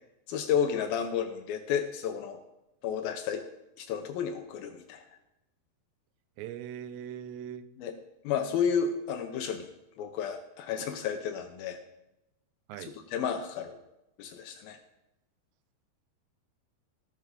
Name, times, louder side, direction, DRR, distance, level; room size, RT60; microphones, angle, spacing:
voice 1, 0.3-2.4 2.8-3.4 3.8-5.0 7.8-7.9 8.2-9.7 10.0-11.8 12.8-13.8 14.2-14.8, left 7 dB, 75° left, 6 dB, 2.3 m, -31 dB
voice 2, 6.4-7.6 12.7-12.9, right 10 dB, 85° right, 12 dB, 2.9 m, -40 dB
17.0 x 6.9 x 5.1 m, 0.91 s
omnidirectional pair, 4.8 m